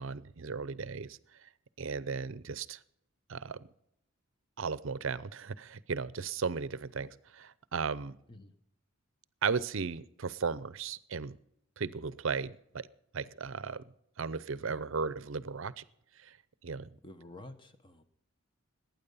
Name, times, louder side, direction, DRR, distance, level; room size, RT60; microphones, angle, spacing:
voice 1, 0.0-1.5 1.8-2.8 3.3-3.7 4.6-8.2 9.4-11.4 11.8-12.9 13.1-13.8 14.2-15.8 16.2-16.4 16.6-16.9, right 5 dB, 60° right, 18 dB, 0.6 m, -36 dB
voice 2, 17.0-18.0, left 1 dB, 20° left, 9 dB, 1.0 m, -50 dB
19.0 x 9.4 x 5.4 m, 0.74 s
head